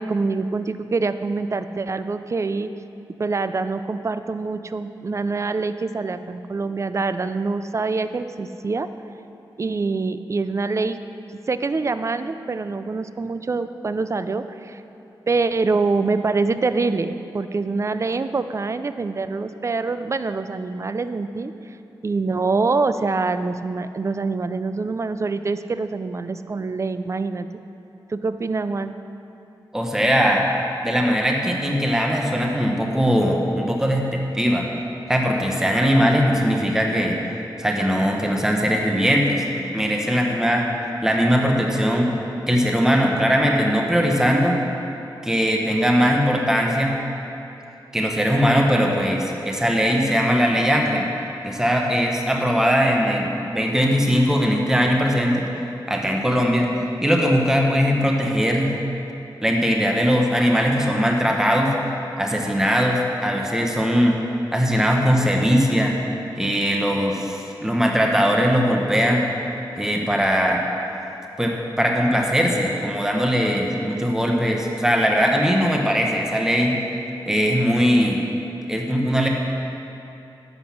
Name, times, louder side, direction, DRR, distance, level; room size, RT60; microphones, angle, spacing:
voice 1, 0.0-2.7 3.2-8.9 9.6-11.0 11.5-14.8 15.3-21.5 22.0-27.5 28.1-28.9 74.3-74.4, right 3 dB, 35° right, 11 dB, 0.5 m, -25 dB
voice 2, 29.7-30.5 30.8-34.7 35.1-37.2 37.6-39.4 39.7-40.7 41.0-42.1 42.5-44.6 45.2-46.9 47.9-51.1 51.4-55.4 55.9-56.7 57.0-58.7 59.4-61.7 62.2-64.2 64.5-65.9 66.4-69.3 69.8-70.6 71.4-76.7 77.3-78.2 78.7-79.3, equal, 5° right, 0 dB, 1.2 m, -20 dB
11.5 x 8.2 x 6.0 m, 2.8 s
wide cardioid pair, 95°, 8 cm